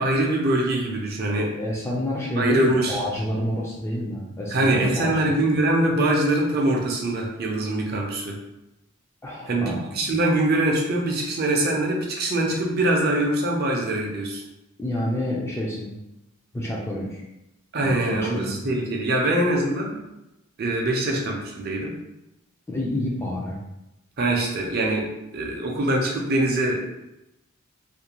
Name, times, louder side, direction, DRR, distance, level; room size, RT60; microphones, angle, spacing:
voice 1, 0.0-1.5 2.4-3.0 4.5-8.4 9.5-14.4 17.7-20.0 20.6-21.9 24.2-25.1 25.3-26.8, right 1 dB, 45° right, -1 dB, 0.5 m, -23 dB
voice 2, 1.3-5.4 9.2-9.9 14.8-16.0 16.5-17.2 17.8-18.5 22.7-23.6, left 1 dB, 10° left, -3 dB, 0.3 m, -29 dB
2.5 x 2.1 x 2.9 m, 0.91 s
head